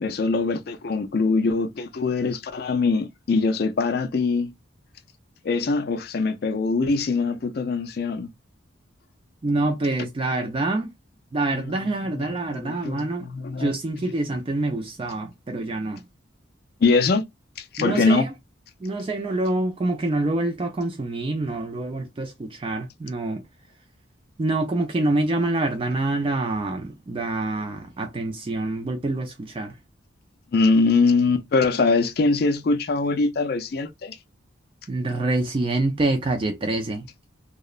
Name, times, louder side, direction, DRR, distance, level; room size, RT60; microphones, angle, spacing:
voice 1, 0.0-4.5 5.4-8.3 11.5-11.9 12.1-13.7 16.8-17.2 17.6-18.3 30.5-34.2, left 3 dB, 50° left, 0.4 m, -23 dB
voice 2, 9.4-10.9 11.3-13.3 13.6-16.0 17.8-18.3 18.8-23.4 24.4-29.8 34.9-37.1, right 2 dB, 25° right, 0.3 m, -26 dB
2.9 x 2.0 x 2.3 m
head